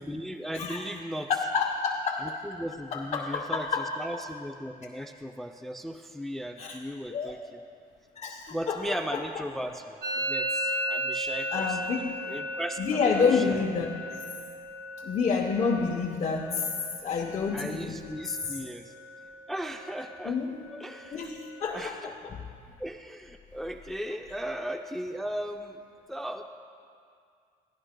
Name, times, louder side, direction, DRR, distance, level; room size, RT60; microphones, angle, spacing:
voice 1, 0.0-1.3 2.2-7.6 8.5-13.0 13.3-13.6 17.5-18.9 19.5-20.4 20.7-21.3 21.7-22.1 22.8-25.8 26.1-26.4, equal, ahead, 6 dB, 0.4 m, -37 dB
voice 2, 1.3-2.4 2.9-4.2 6.6-6.8 7.1-7.4 8.2-9.2 11.5-12.2 12.8-14.1 15.0-16.7 17.0-18.2 20.2-20.6 21.1-22.4, left 5 dB, 40° left, -1 dB, 0.9 m, -29 dB
Musical instrument, 10.0-17.7 17.9-18.5 18.8-19.3 19.6-21.6, equal, 85° right, 1.2 m, -36 dB
16.5 x 15.5 x 2.2 m, 2.3 s
cardioid pair, 110°, 17 cm